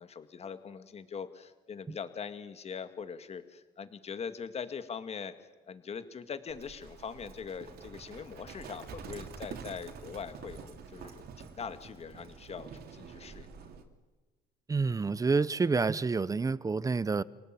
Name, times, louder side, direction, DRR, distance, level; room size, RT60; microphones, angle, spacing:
voice 1, 0.0-5.3 5.7-13.5, left 6 dB, 40° left, 2.1 m, -42 dB
Livestock farm animals working animals, 6.5-13.8, right 6 dB, 65° right, 3.2 m, -47 dB
voice 2, 14.7-17.2, right 4 dB, 20° right, 0.9 m, -28 dB
28.0 x 19.0 x 9.1 m
cardioid pair, 110°, 17 cm